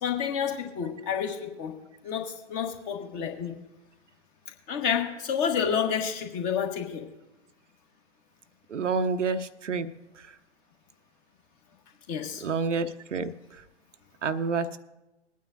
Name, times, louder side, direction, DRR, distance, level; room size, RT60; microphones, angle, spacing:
voice 1, 0.0-1.8 2.0-3.6 4.7-7.0 12.1-12.4, left 7 dB, 30° left, 4 dB, 1.4 m, -29 dB
voice 2, 8.7-9.9 12.4-13.3 14.2-14.8, right 4 dB, 80° right, 10 dB, 0.8 m, -28 dB
22.0 x 9.3 x 2.6 m, 1.0 s
figure-of-eight pair, 120°, 36 cm